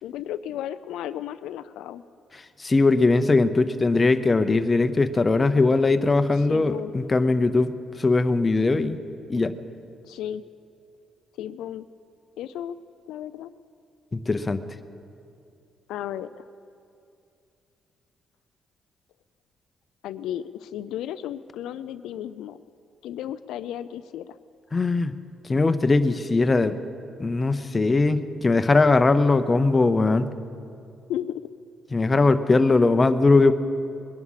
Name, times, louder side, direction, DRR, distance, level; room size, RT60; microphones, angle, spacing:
voice 1, 0.0-2.0 6.3-6.9 10.0-10.4 11.4-11.9 12.4-13.5 15.9-16.5 20.0-22.6 23.0-24.4 31.1-31.4, left 11 dB, 90° left, 12 dB, 0.4 m, -34 dB
voice 2, 2.6-7.7 8.0-9.0 9.3-9.5 14.1-14.6 24.7-25.2 25.5-26.8 27.2-30.3 31.9-33.5, left 3 dB, 25° left, 10 dB, 0.8 m, -20 dB
21.0 x 11.0 x 5.7 m, 2.5 s
cardioid pair, 90°, 0 cm